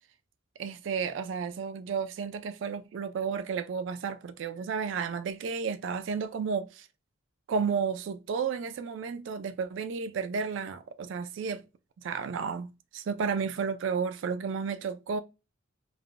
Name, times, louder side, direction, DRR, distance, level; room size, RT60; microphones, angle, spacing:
voice 1, 0.6-6.9 7.5-11.6 12.0-15.2, right 6 dB, 60° right, 0.3 m, -32 dB
3.3 x 2.1 x 2.4 m
head